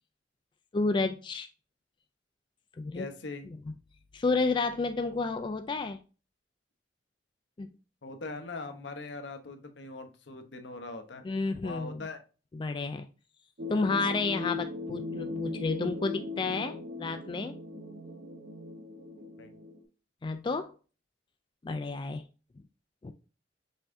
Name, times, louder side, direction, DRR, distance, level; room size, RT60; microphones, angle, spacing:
voice 1, 0.7-1.5 2.8-3.0 4.1-6.0 7.6-7.7 11.2-12.0 12.5-13.1 13.7-17.6 20.2-20.7 21.6-22.2 23.0-23.1, left 3 dB, 25° left, 0.3 m, -31 dB
voice 2, 2.9-3.5 8.0-11.3 11.6-12.2 19.4-19.5, left 3 dB, 80° left, 0.8 m, -41 dB
sound 1, 13.6-19.8, left 3 dB, 85° right, 1.3 m, -38 dB
5.5 x 3.5 x 2.6 m
head